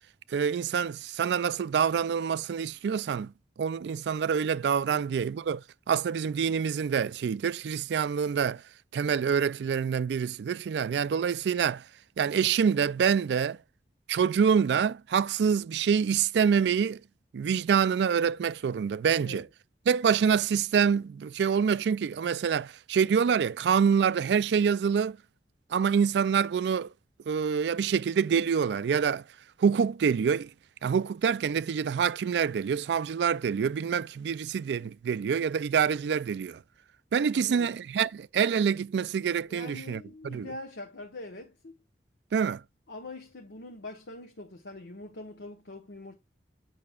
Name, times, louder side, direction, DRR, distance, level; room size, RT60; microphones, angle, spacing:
voice 1, 0.3-3.3 3.6-5.6 5.9-8.6 8.9-11.8 12.2-13.6 14.1-17.0 17.3-19.5 19.9-25.2 25.7-26.9 27.3-29.2 29.6-30.5 30.8-36.6 37.1-40.5 42.3-42.6, right 7 dB, 75° right, 0.3 m, -26 dB
voice 2, 37.3-37.7 39.5-41.8 42.9-46.2, left 2 dB, 80° left, 0.9 m, -43 dB
8.5 x 5.8 x 2.3 m
head